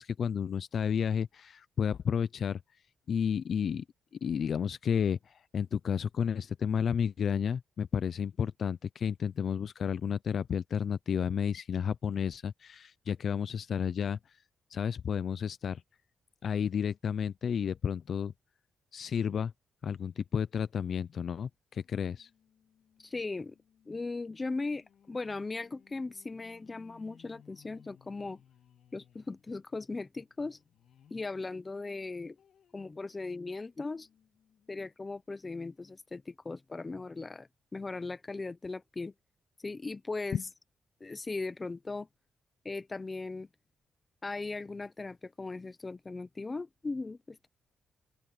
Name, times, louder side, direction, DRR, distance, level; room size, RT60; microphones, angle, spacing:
voice 1, 0.0-2.6 3.1-3.8 4.2-14.2 14.7-15.8 16.4-18.3 18.9-19.5 19.8-22.3 40.3-40.4, left 7 dB, 45° left, 0.4 m, -31 dB
sound 1, 21.7-31.3 31.8-34.8 35.3-35.4 35.7-35.8, left 8 dB, 65° left, 3.1 m, -64 dB
voice 2, 23.0-23.6 23.9-28.4 28.9-30.6 31.1-32.4 32.7-34.1 34.7-39.1 39.6-40.4 41.0-42.1 42.6-43.5 44.2-47.5, left 3 dB, 20° left, 0.8 m, -38 dB
open air
wide cardioid pair, 165°, 0 cm